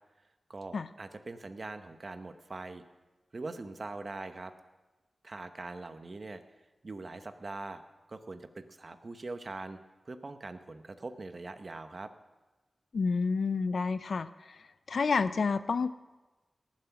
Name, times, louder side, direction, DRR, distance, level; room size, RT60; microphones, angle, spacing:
voice 1, 0.5-2.8 3.3-4.5 5.2-6.4 6.8-7.8 8.1-9.8 10.1-12.1, right 3 dB, 45° right, 9 dB, 0.9 m, -42 dB
voice 2, 12.9-14.3 14.9-15.9, left 4 dB, 75° left, 14 dB, 0.5 m, -29 dB
18.5 x 7.5 x 5.8 m, 1.2 s
wide cardioid pair, 85°, 0 cm